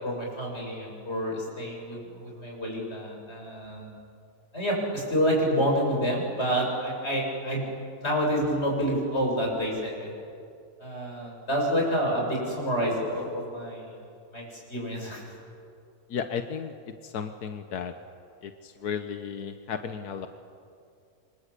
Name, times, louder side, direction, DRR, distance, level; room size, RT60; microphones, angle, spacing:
voice 1, 0.0-3.9 4.5-7.6 8.0-10.1 10.8-13.9 14.3-15.2, equal, 45° left, -1 dB, 7.4 m, -28 dB
voice 2, 16.1-16.7 17.0-17.9 18.4-20.3, left 7 dB, 90° left, 8 dB, 1.6 m, -34 dB
28.0 x 25.0 x 8.3 m, 2.4 s
omnidirectional pair, 1.6 m